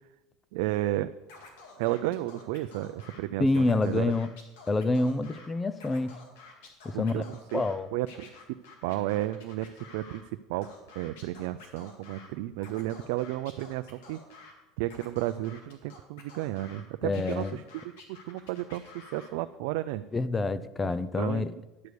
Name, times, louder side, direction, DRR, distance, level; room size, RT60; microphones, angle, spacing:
voice 1, 0.5-1.1 1.8-4.1 6.9-7.6 7.9-8.3 8.8-10.2 10.5-10.7 11.0-14.2 14.8-17.8 18.1-20.0 20.8-21.5, right 15 dB, 75° right, 10 dB, 0.3 m, -32 dB
Scratching (performance technique), 1.3-3.2 3.5-5.5 5.7-7.7 8.1-10.2 10.6-12.3 12.6-14.5 14.9-16.8 17.1-19.3, left 4 dB, 85° left, 1.9 m, -50 dB
voice 2, 3.4-4.3 4.7-6.2 6.8-7.3 7.5-7.9 17.0-17.6 20.1-21.5, left 2 dB, 15° left, 15 dB, 0.5 m, -27 dB
10.5 x 4.7 x 6.7 m, 1.0 s
supercardioid pair, 130°, 0 cm